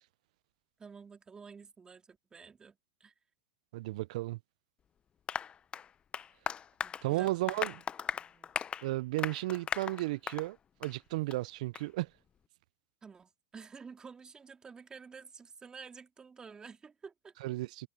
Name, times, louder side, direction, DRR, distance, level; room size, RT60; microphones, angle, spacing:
voice 1, 0.8-3.1 6.8-8.6 13.0-17.3, right 5 dB, 20° right, 3.6 m, -51 dB
voice 2, 3.7-4.4 7.0-7.7 8.8-12.1 17.4-17.9, right 18 dB, 70° right, 0.4 m, -34 dB
Applause, 5.3-10.5 10.8-11.0 11.3-11.4 11.8-11.9, left 8 dB, 25° left, 0.7 m, -38 dB
hypercardioid pair, 115°, 4 cm